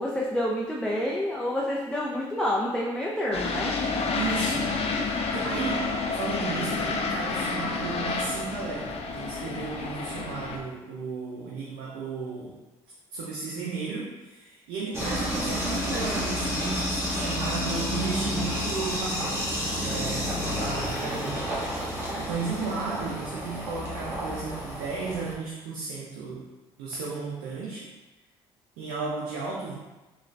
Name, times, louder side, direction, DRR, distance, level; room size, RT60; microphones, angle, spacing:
voice 1, 0.0-3.7, left 1 dB, 5° left, -3 dB, 0.5 m, -28 dB
sound 1, 3.3-10.6, left 4 dB, 55° left, 0.5 m, -29 dB
voice 2, 4.1-4.7 5.0-12.6 13.1-19.5 19.8-21.5 21.9-26.5 26.8-27.9 28.8-29.8, right 4 dB, 85° right, -4 dB, 0.5 m, -34 dB
sound 2, 14.9-25.3, equal, 20° right, 1.5 m, -30 dB
3.7 x 2.4 x 3.2 m, 1.1 s
supercardioid pair, 65°, 12 cm